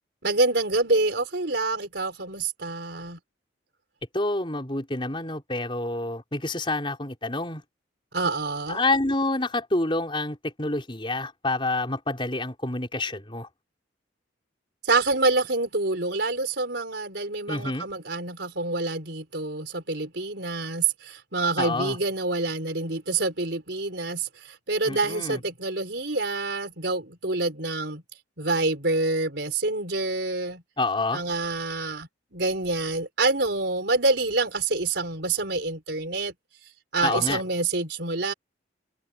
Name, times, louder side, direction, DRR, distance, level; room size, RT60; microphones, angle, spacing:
voice 1, 0.2-3.2 8.1-8.8 14.8-28.0 28.4-30.6 31.1-36.3 36.9-38.3, right 3 dB, 60° right, 5.0 m, -27 dB
voice 2, 4.1-7.6 8.7-13.5 17.5-17.9 21.6-22.0 24.8-25.4 30.8-31.2 37.0-37.4, left 2 dB, 25° left, 4.8 m, -28 dB
head